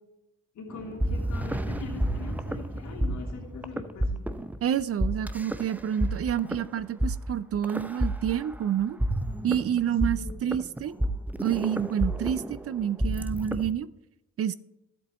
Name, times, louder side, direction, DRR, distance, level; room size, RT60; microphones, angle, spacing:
voice 1, 0.5-4.2 10.1-10.3, left 4 dB, 70° left, 0 dB, 2.9 m, -41 dB
sound 1, 0.7-13.7, equal, 5° right, 0.6 m, -30 dB
voice 2, 4.6-9.0 9.4-10.9 11.4-13.9 14.4-14.5, right 9 dB, 50° right, 16 dB, 0.5 m, -28 dB
12.0 x 8.0 x 3.1 m, 0.87 s
cardioid pair, 90°, 30 cm